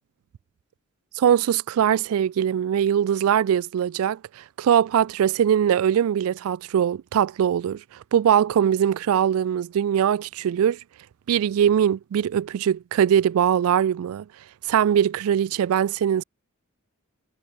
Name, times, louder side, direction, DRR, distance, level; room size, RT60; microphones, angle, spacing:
voice 1, 1.2-7.8 8.1-10.8 11.3-14.3 14.7-16.2, right 9 dB, 80° right, 0.3 m, -21 dB
head